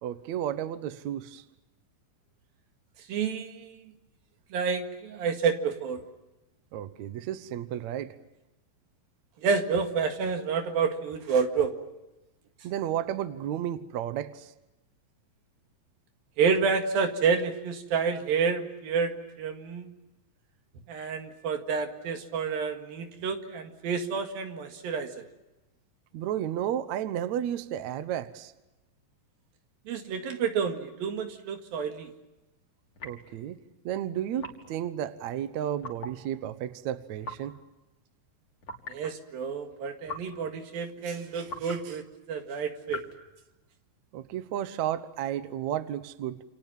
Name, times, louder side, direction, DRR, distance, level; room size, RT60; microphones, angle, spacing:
voice 1, 0.0-1.4 6.7-8.2 12.6-14.5 26.1-28.5 33.0-33.6 33.8-37.6 44.1-46.4, right 11 dB, 65° right, 12 dB, 2.0 m, -32 dB
voice 2, 3.1-3.8 4.5-6.0 9.4-11.7 16.4-19.9 20.9-25.3 29.9-32.1 38.9-42.0 42.3-43.0, right 5 dB, 85° right, 5 dB, 3.8 m, -29 dB
sound 1, 33.0-33.3 34.4-34.8 35.8-36.2 37.2-37.5 38.6-39.0 40.0-40.4 41.5-41.8 42.9-43.2, left 2 dB, 40° left, 3.3 m, -41 dB
29.0 x 27.5 x 7.4 m, 1.0 s
omnidirectional pair, 4.1 m